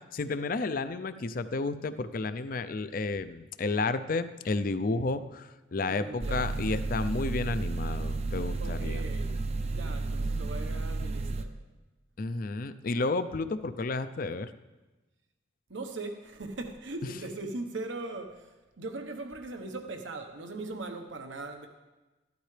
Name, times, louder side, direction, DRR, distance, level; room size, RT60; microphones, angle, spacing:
voice 1, 0.1-9.0 12.2-14.5, left 3 dB, 50° left, 12 dB, 0.5 m, -31 dB
voice 2, 5.9-6.5 8.6-9.4 9.7-11.5 15.7-21.7, right 2 dB, 85° right, 5 dB, 1.1 m, -40 dB
sound 1, 6.2-11.4, right 3 dB, 35° right, 0.6 m, -32 dB
13.5 x 12.0 x 3.3 m, 1.2 s
head